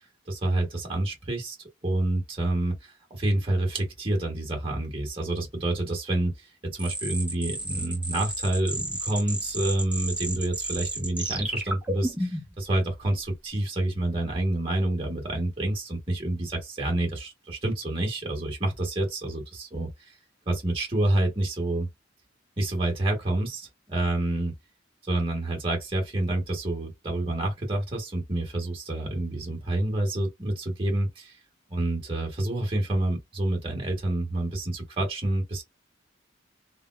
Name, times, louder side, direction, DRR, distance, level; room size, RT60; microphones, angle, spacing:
voice 1, 0.3-1.6 1.8-2.8 3.1-19.9 20.5-21.9 22.6-24.5 25.0-31.3 31.7-35.6, right 1 dB, 30° right, 1.3 m, -28 dB
sound 1, 6.8-12.6, right 1 dB, 5° right, 0.7 m, -32 dB
3.3 x 2.2 x 2.3 m
head